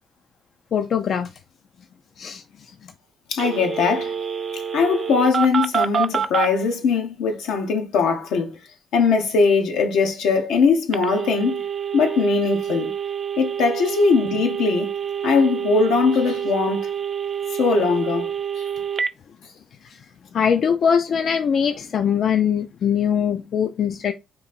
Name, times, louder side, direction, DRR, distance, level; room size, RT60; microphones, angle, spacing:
voice 1, 0.7-1.4 2.2-2.9 19.8-20.1 20.3-24.1, left 7 dB, 60° left, 0.4 m, -22 dB
voice 2, 3.3-4.1 4.7-8.6 8.9-11.6 11.9-12.9 13.4-14.9 15.2-16.9 17.5-18.7, left 4 dB, 85° left, 0.9 m, -20 dB
Telephone, 3.4-6.5 10.9-19.1, right 7 dB, 45° right, 0.4 m, -27 dB
3.9 x 2.7 x 4.1 m
cardioid pair, 90°, 0 cm